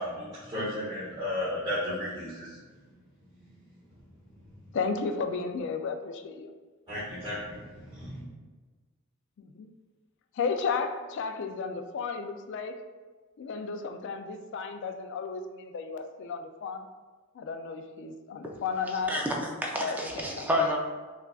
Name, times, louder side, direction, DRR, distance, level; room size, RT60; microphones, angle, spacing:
voice 1, 0.0-2.6 6.9-8.2, left 1 dB, 25° right, -15 dB, 1.5 m, -34 dB
voice 2, 4.7-6.5 9.4-9.7 10.3-12.8 13.4-16.9 17.3-19.1 19.8-20.6, left 5 dB, 55° left, 7 dB, 0.3 m, -33 dB
voice 3, 19.1-20.8, left 1 dB, 10° right, -1 dB, 0.5 m, -29 dB
5.7 x 2.4 x 2.3 m, 1.4 s
head